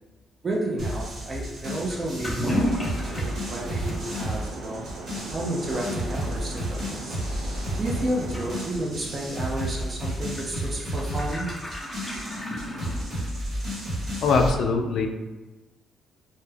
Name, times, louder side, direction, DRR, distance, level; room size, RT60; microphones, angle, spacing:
voice 1, 0.4-4.9 5.3-7.2 7.8-11.6, right 1 dB, 35° right, -3 dB, 0.5 m, -31 dB
sound 1, 0.8-14.5, equal, 60° right, 1.1 m, -32 dB
Toilet flush / Liquid, 1.9-13.5, equal, 15° left, 0.8 m, -35 dB
sound 2, 2.6-8.7, right 3 dB, 90° right, 0.3 m, -39 dB
voice 2, 14.2-15.1, left 4 dB, 70° left, 4 dB, 0.3 m, -22 dB
2.2 x 2.1 x 3.2 m, 1.2 s
cardioid pair, 90°, 0 cm